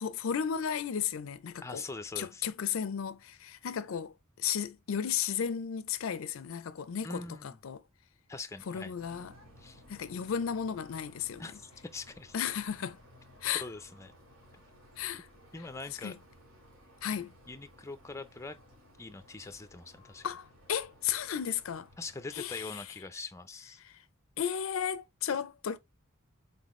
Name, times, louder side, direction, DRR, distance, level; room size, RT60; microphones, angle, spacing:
voice 1, 0.0-1.8 2.2-7.8 8.7-9.3 9.9-11.5 12.3-13.0 13.4-13.6 15.0-15.3 16.0-16.2 17.0-17.3 20.2-21.9 22.3-22.8 23.8-24.0 24.4-25.8, left 8 dB, 75° left, 0.4 m, -34 dB
voice 2, 1.6-2.5 7.0-7.6 8.3-8.9 9.6-9.8 11.4-12.3 13.6-14.1 15.5-16.1 17.5-18.6 19.0-20.2 22.0-23.8, left 3 dB, 15° left, 0.4 m, -43 dB
sound 1, 9.0-22.6, equal, 85° right, 1.9 m, -58 dB
4.1 x 3.8 x 3.0 m
head